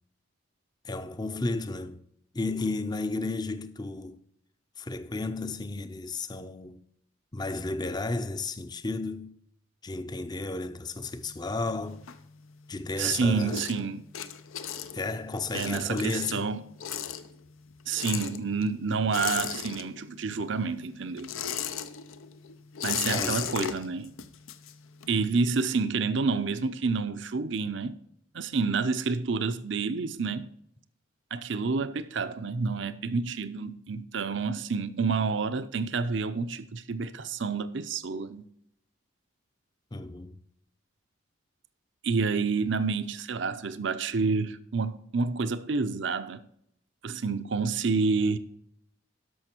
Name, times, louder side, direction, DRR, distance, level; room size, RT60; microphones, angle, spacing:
voice 1, 0.8-2.0 2.3-4.2 4.8-6.8 7.3-9.4 9.8-12.0 12.7-13.6 14.9-16.5 23.0-23.5 39.9-40.4, left 3 dB, 20° left, 0.5 m, -33 dB
sound 1, 11.1-12.7 13.1-20.3 20.6-25.3, left 9 dB, 85° left, 0.8 m, -36 dB
voice 2, 13.0-14.0 15.5-16.6 17.9-21.3 22.8-24.1 25.1-28.0 28.3-30.5 31.3-38.5 42.0-46.4 47.0-48.4, right 4 dB, 65° right, 0.7 m, -29 dB
13.0 x 5.8 x 4.5 m
head